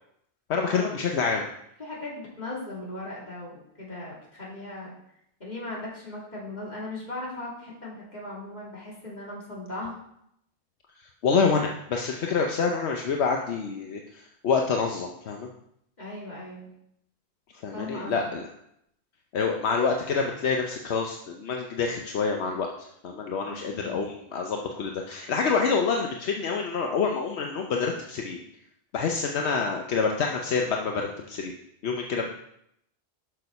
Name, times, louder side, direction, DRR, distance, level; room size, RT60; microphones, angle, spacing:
voice 1, 0.5-1.5 11.2-15.5 17.6-18.4 19.3-28.4 28.9-31.5 31.8-32.3, left 5 dB, 80° left, 2 dB, 1.0 m, -27 dB
voice 2, 1.8-4.9 5.4-9.9 16.0-16.7 17.7-18.2 23.4-24.0, left 2 dB, 40° left, -6 dB, 2.9 m, -38 dB
6.7 x 6.4 x 5.3 m, 0.75 s
omnidirectional pair, 1.1 m